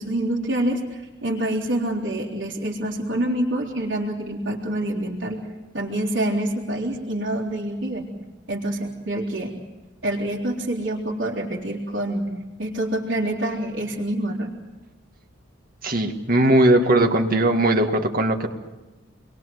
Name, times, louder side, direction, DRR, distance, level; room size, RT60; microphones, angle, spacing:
voice 1, 0.0-5.4 5.7-8.1 8.5-9.5 10.0-12.3 12.6-14.5, right 1 dB, 70° right, -5 dB, 3.6 m, -26 dB
voice 2, 15.8-18.5, right 1 dB, 45° right, 4 dB, 2.1 m, -19 dB
29.0 x 22.0 x 7.9 m, 1.1 s
head